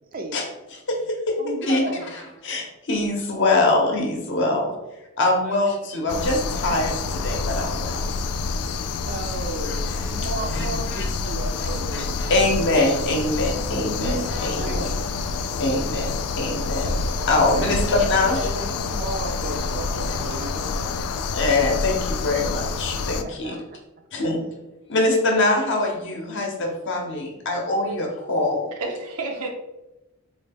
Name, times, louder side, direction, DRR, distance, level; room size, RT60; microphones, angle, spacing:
voice 1, 0.1-0.4 1.4-2.1 5.4-5.7 9.0-12.4 13.6-14.3 14.6-14.9 17.6-21.0 23.2-23.6, right 2 dB, 40° right, 4 dB, 0.4 m, -34 dB
voice 2, 0.9-1.4 1.6-1.8 2.1-4.7 5.2-6.9 7.2-8.0 9.6-10.1 10.4-10.7 10.9-11.0 11.9-14.9 15.6-18.4 21.3-23.6 24.1-24.4 24.9-28.7, left 2 dB, 55° left, 1 dB, 0.7 m, -23 dB
sound 1, 6.1-23.2, left 4 dB, 85° left, 0.3 m, -27 dB
voice 3, 28.7-29.5, right 3 dB, 85° right, 2 dB, 0.7 m, -30 dB
3.9 x 2.2 x 3.4 m, 0.98 s
head